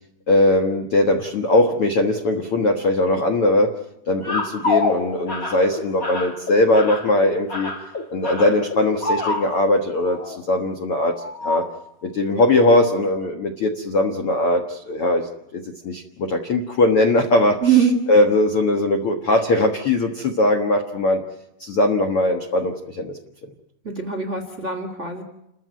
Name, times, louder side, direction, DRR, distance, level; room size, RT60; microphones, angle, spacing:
voice 1, 0.3-3.7 4.1-7.7 8.1-11.7 12.0-17.6 18.1-21.2 21.6-23.2, left 1 dB, 80° left, 4 dB, 1.2 m, -20 dB
sound 1, 4.2-9.7 10.0-10.4 11.2-11.8 12.5-12.8 13.2-13.3, left 3 dB, 35° left, 1.4 m, -27 dB
voice 2, 17.6-18.0 23.8-25.2, right 7 dB, 30° right, 5 dB, 1.4 m, -21 dB
29.0 x 14.0 x 9.2 m, 0.84 s
omnidirectional pair, 4.9 m